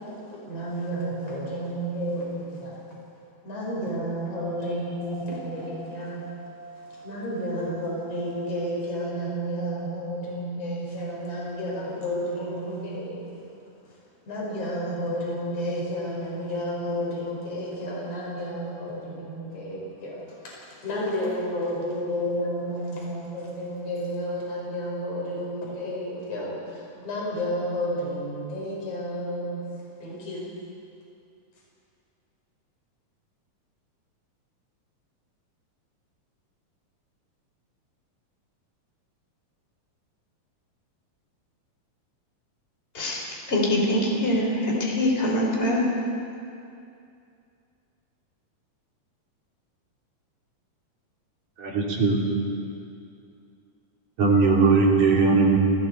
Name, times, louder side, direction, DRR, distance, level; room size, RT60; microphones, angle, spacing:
voice 1, 0.0-2.8 3.4-13.3 13.9-14.0 14.3-29.6 30.0-30.5, equal, 45° left, -5 dB, 6.0 m, -31 dB
voice 2, 43.5-45.9, left 1 dB, 15° left, -2 dB, 3.8 m, -23 dB
voice 3, 51.6-52.3 54.2-55.6, right 4 dB, 55° right, -3 dB, 4.3 m, -19 dB
29.5 x 19.5 x 4.6 m, 2.5 s
omnidirectional pair, 4.0 m